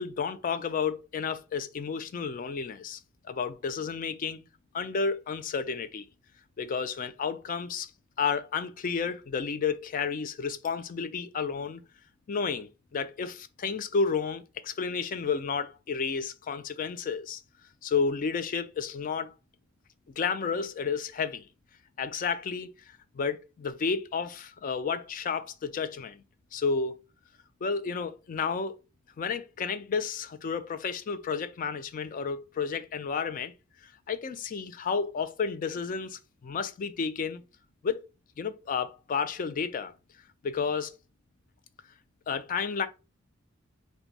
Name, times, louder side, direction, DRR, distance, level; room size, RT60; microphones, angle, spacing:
voice 1, 0.0-3.0 3.3-4.4 4.7-6.1 6.6-7.9 8.2-11.8 12.3-17.4 17.8-19.3 20.2-21.4 22.0-22.7 23.1-26.2 26.5-27.0 27.6-28.8 29.2-33.5 34.1-37.4 37.8-38.0 38.4-39.9 40.4-41.0 42.3-42.9, left 5 dB, 40° left, 0.3 m, -31 dB
2.5 x 2.2 x 4.0 m
head